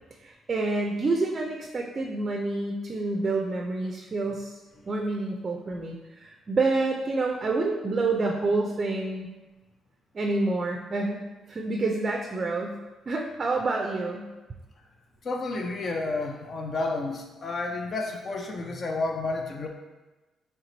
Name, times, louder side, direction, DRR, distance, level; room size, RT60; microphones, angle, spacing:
voice 1, 0.2-4.6 4.9-9.3 10.1-11.2 11.5-12.8 13.1-14.3, right 3 dB, 40° right, 1 dB, 0.4 m, -28 dB
voice 2, 15.2-19.7, left 3 dB, 45° left, 2 dB, 0.4 m, -31 dB
3.2 x 2.9 x 3.9 m, 1.1 s
cardioid pair, 90°, 0 cm